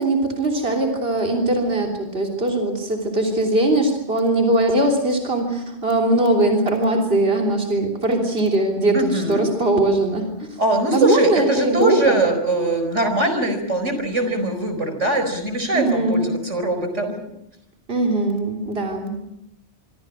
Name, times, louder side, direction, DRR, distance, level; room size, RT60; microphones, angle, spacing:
voice 1, 0.0-10.6 10.9-12.2 15.7-16.2 17.9-19.3, right 2 dB, 55° right, 1 dB, 3.6 m, -21 dB
voice 2, 8.9-9.5 10.6-17.2, right 2 dB, 85° right, 7 dB, 5.1 m, -21 dB
25.5 x 24.5 x 6.4 m, 0.83 s
omnidirectional pair, 1.2 m